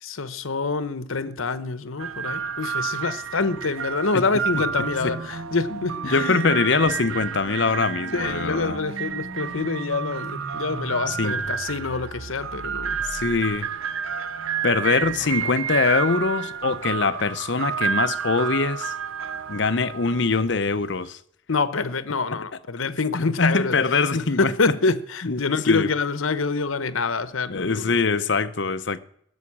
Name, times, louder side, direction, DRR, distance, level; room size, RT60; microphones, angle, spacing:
voice 1, 0.0-6.4 8.1-13.0 21.5-23.8 24.1-28.0, left 4 dB, 85° left, 1.0 m, -26 dB
sound 1, 2.0-21.1, right 7 dB, 85° right, 0.6 m, -30 dB
sound 2, 3.7-13.8, right 1 dB, 40° right, 0.8 m, -41 dB
voice 2, 6.0-8.8 11.1-11.3 13.0-13.7 14.6-18.9 19.5-21.2 23.1-24.5 25.2-25.4 25.7-25.9 27.5-29.0, left 4 dB, 60° left, 0.7 m, -23 dB
sound 3, 6.7-14.7 15.0-17.3, right 1 dB, 60° right, 2.0 m, -48 dB
17.0 x 7.1 x 8.6 m
head